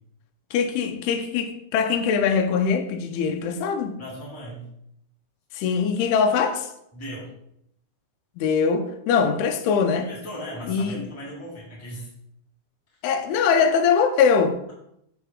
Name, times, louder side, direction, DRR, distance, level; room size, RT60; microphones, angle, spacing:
voice 1, 0.5-4.0 5.5-6.7 8.4-10.1 10.7-11.0 13.0-14.6, left 6 dB, 85° left, 2.6 m, -22 dB
voice 2, 4.0-4.7 6.9-7.3 9.9-12.1, equal, 5° left, 1.6 m, -37 dB
7.0 x 3.6 x 6.1 m
omnidirectional pair, 4.6 m